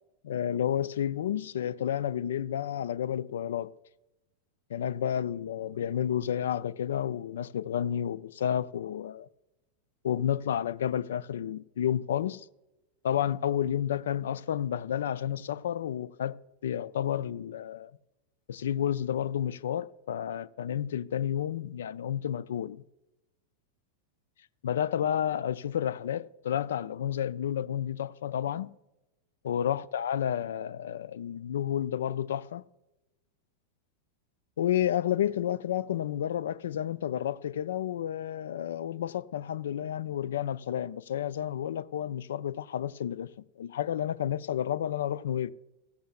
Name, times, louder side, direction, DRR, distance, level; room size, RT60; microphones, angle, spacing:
voice 1, 0.2-3.7 4.7-9.3 10.0-12.5 13.0-17.9 18.5-22.8 24.6-28.7 29.4-32.6 34.6-43.3 43.6-45.5, left 10 dB, 60° left, 0.4 m, -31 dB
16.5 x 14.0 x 2.3 m
figure-of-eight pair, 90°, 0 cm